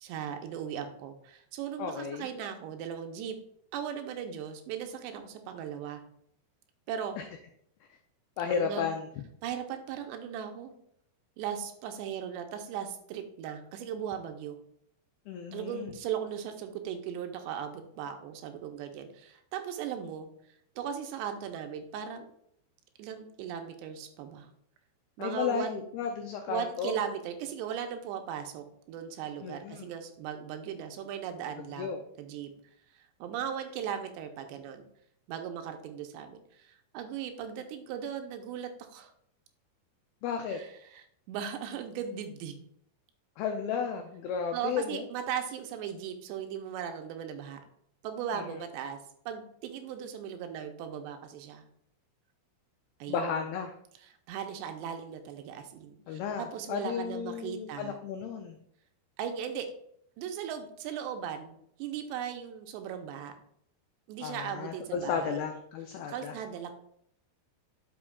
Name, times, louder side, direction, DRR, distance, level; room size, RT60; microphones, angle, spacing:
voice 1, 0.0-3.4 3.7-6.0 6.9-7.2 8.5-8.9 9.4-10.7 11.4-14.6 15.5-20.3 20.8-22.3 23.0-24.5 25.2-25.8 26.5-31.9 32.2-32.5 32.9-34.8 35.3-39.1 40.5-42.5 44.5-47.6 48.0-49.0 49.3-51.6 53.0-53.3 54.0-58.0 59.2-59.7 60.2-63.3 64.1-65.4 66.0-66.7, right 8 dB, 85° right, 6 dB, 2.9 m, -38 dB
voice 2, 1.8-2.3 7.2-7.3 8.4-9.1 15.3-15.9 25.2-27.0 29.4-29.9 31.7-32.0 40.2-40.6 43.4-45.1 48.3-48.4 53.1-53.7 56.1-58.6 64.2-66.4, left 6 dB, 90° left, 5 dB, 2.1 m, -33 dB
11.0 x 5.7 x 2.3 m, 0.70 s
omnidirectional pair, 5.1 m